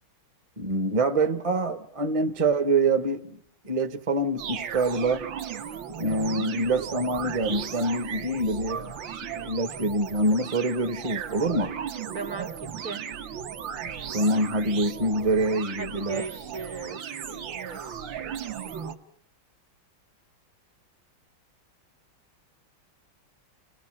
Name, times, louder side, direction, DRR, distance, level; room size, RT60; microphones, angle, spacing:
voice 1, 0.6-3.4 3.6-5.3 6.0-8.9 9.3-11.8 14.1-16.2, right 2 dB, 25° right, 0.7 m, -25 dB
sound 1, 4.4-18.9, right 8 dB, 65° right, 1.8 m, -36 dB
voice 2, 12.1-13.1 15.8-17.8, right 4 dB, 45° right, 1.3 m, -37 dB
29.5 x 19.5 x 7.5 m
omnidirectional pair, 2.3 m